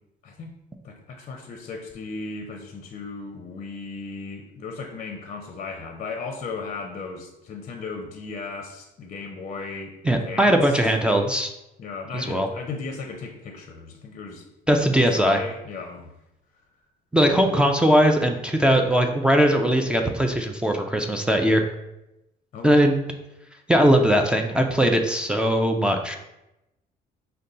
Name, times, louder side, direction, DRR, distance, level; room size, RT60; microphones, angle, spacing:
voice 1, 0.8-10.8 11.8-14.5 14.9-16.1 22.5-22.8, left 4 dB, 45° left, 4 dB, 0.6 m, -36 dB
voice 2, 10.1-11.5 12.1-12.5 14.7-15.4 17.1-21.6 22.6-23.1 23.7-26.2, right 1 dB, 5° right, 3 dB, 0.4 m, -20 dB
5.3 x 2.2 x 3.8 m, 0.90 s
cardioid pair, 110°, 17 cm